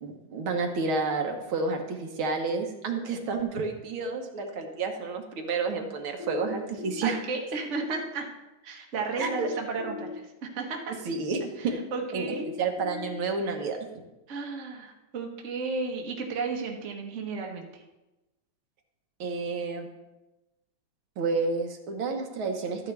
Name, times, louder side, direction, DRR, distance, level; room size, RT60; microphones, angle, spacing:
voice 1, 0.0-7.2 9.2-9.5 11.1-11.8 12.1-13.8 19.2-19.9 21.2-22.9, right 4 dB, 75° right, 3 dB, 1.9 m, -30 dB
sound 1, 6.2-7.2 9.2-10.2 12.2-13.2, left 5 dB, 65° left, 1.2 m, -38 dB
voice 2, 7.0-8.3 8.6-10.9 11.6-12.5 14.3-17.7, right 4 dB, 40° right, 1 dB, 1.2 m, -33 dB
12.5 x 9.3 x 3.3 m, 1.0 s
omnidirectional pair, 2.3 m